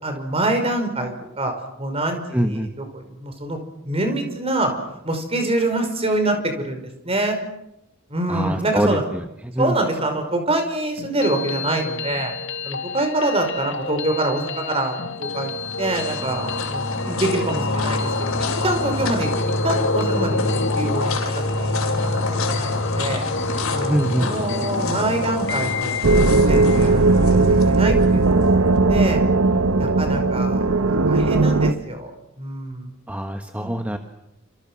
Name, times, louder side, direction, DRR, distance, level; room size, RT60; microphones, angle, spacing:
voice 1, 0.0-1.5 1.8-3.6 3.8-4.7 5.0-7.4 8.1-9.0 9.6-12.4 12.6-15.5 15.8-20.4 20.8-23.2 23.7-26.0 26.5-28.6 28.9-29.2 29.8-32.1 32.4-32.9 33.6-33.8, right 2 dB, 30° right, 5 dB, 5.3 m, -25 dB
voice 2, 2.3-2.7 8.3-8.9 9.5-9.7 23.9-24.3 33.1-34.0, equal, 5° right, 5 dB, 1.4 m, -23 dB
sound 1, 11.0-26.9, left 4 dB, 60° left, 2.0 m, -32 dB
sound 2, 15.2-28.5, left 2 dB, 85° left, 6.2 m, -25 dB
sound 3, 26.0-31.7, right 3 dB, 75° right, 1.1 m, -17 dB
29.0 x 27.5 x 6.3 m, 0.86 s
head